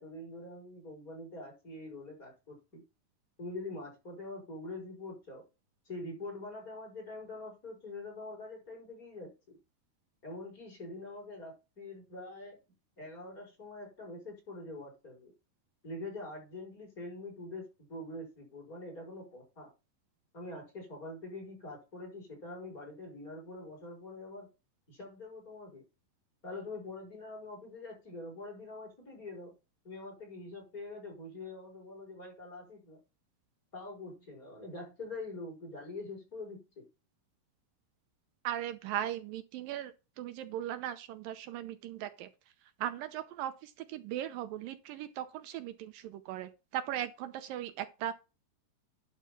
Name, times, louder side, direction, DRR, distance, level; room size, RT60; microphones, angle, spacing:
voice 1, 0.0-2.8 3.4-5.4 5.9-9.6 10.2-12.6 13.0-15.3 15.8-19.7 20.3-24.5 24.9-25.8 26.4-29.5 29.8-33.0 33.7-36.9, left 2 dB, 25° left, 5.6 m, -44 dB
voice 2, 38.4-42.3 42.8-48.1, right 11 dB, 80° right, 2.4 m, -38 dB
11.5 x 4.8 x 5.7 m
omnidirectional pair, 4.1 m